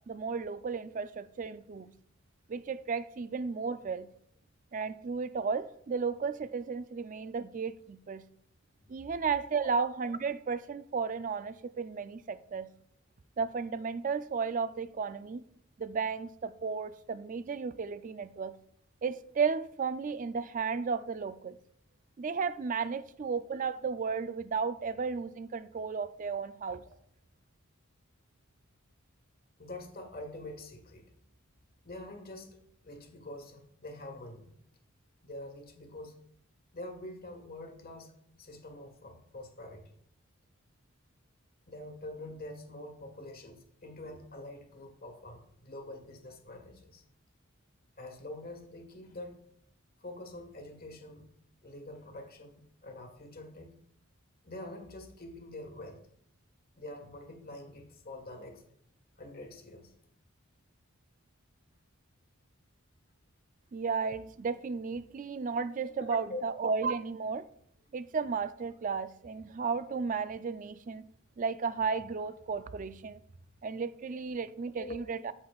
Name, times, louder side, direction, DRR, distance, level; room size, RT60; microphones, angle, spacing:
voice 1, 0.1-1.9 2.5-4.1 4.7-8.2 8.9-12.7 13.4-15.4 15.8-18.5 19.0-21.6 22.2-26.8 63.7-67.5 67.9-71.1 71.4-73.2 73.6-75.3, right 5 dB, 40° right, 0.4 m, -34 dB
voice 2, 29.6-31.1 31.8-32.6 32.8-34.5 35.2-36.2 36.7-38.1 38.4-39.8 41.7-47.0 48.0-49.3 50.0-51.3 51.6-53.7 54.4-56.0 56.7-58.6 59.2-59.9 66.0-66.4 74.6-75.2, left 1 dB, 45° left, 1.5 m, -45 dB
13.5 x 6.0 x 2.4 m
head